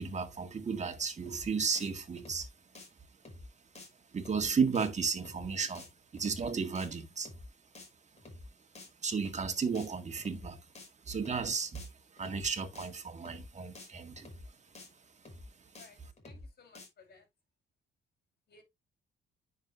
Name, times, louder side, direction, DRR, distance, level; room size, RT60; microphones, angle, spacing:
voice 1, 0.0-2.5 4.1-5.9 6.1-7.3 9.0-10.6 11.1-11.8 12.2-14.3, right 5 dB, 35° right, 1.9 m, -33 dB
sound 1, 1.3-1.5 1.8-1.9 2.2-2.5 2.7-2.9 3.3-3.5 3.8-3.9 4.2-4.5 4.8-4.9 5.3-5.5 5.7-5.9 6.2-6.5 6.8-6.9 7.3-7.5 7.8-7.9 8.2-8.5 8.8-8.9 9.3-9.5 9.7-9.9 10.2-10.5 10.8-10.9 11.3-11.5 11.7-11.9 12.2-12.5 12.8-12.9 13.3-13.5 13.8-13.9 14.2-14.5 14.7-14.9 15.3-15.5 15.8-15.9 16.2-16.5 16.7-16.9, left 2 dB, 35° left, 5.6 m, -49 dB
voice 2, 15.8-17.3 18.5-18.6, left 4 dB, 55° left, 5.7 m, -59 dB
9.7 x 6.6 x 2.6 m
cardioid pair, 90°, 20 cm